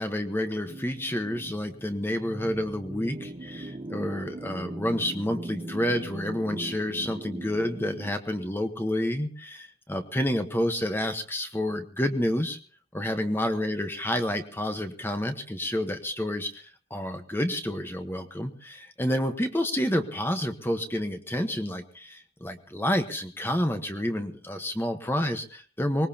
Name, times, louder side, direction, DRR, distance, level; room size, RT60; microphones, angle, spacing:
voice 1, 0.0-12.6 12.9-26.1, left 1 dB, 10° left, 6 dB, 1.1 m, -29 dB
sound 1, 0.7-8.2, right 1 dB, 30° right, 0.8 m, -39 dB
24.5 x 20.0 x 2.9 m, 0.40 s
head